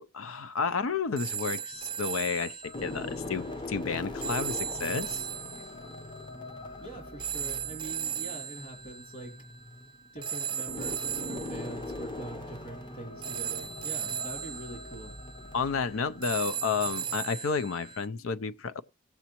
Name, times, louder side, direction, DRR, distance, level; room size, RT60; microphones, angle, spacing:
voice 1, 0.0-5.3 15.5-18.8, left 5 dB, 75° left, 0.5 m, -31 dB
sound 1, 1.2-18.1, right 9 dB, 25° right, 0.5 m, -38 dB
sound 2, 1.3-2.1 2.6-17.2, left 2 dB, 20° left, 0.7 m, -42 dB
voice 2, 6.8-9.3 10.1-15.1, right 2 dB, 40° left, 3.0 m, -44 dB
18.0 x 7.1 x 2.9 m
head